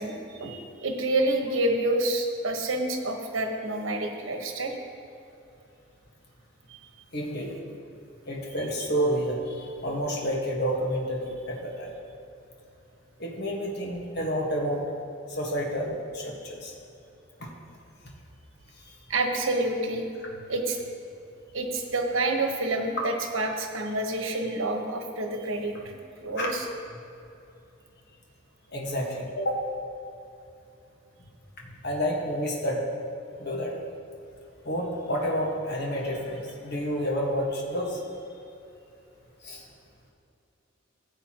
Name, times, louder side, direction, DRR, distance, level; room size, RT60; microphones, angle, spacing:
voice 1, 0.0-4.7 6.7-6.8 19.1-20.1 20.5-20.8 21.5-26.6, right 2 dB, 80° right, 3 dB, 1.2 m, -28 dB
voice 2, 7.1-7.5 8.3-11.9 13.2-14.8 15.3-16.7 17.4-17.5 18.8-18.9 26.4-26.5 28.7-29.6 31.6-32.8 33.4-33.7 34.6-38.0 39.4-39.6, equal, 55° left, -2 dB, 1.5 m, -29 dB
15.0 x 8.2 x 3.0 m, 2.7 s
head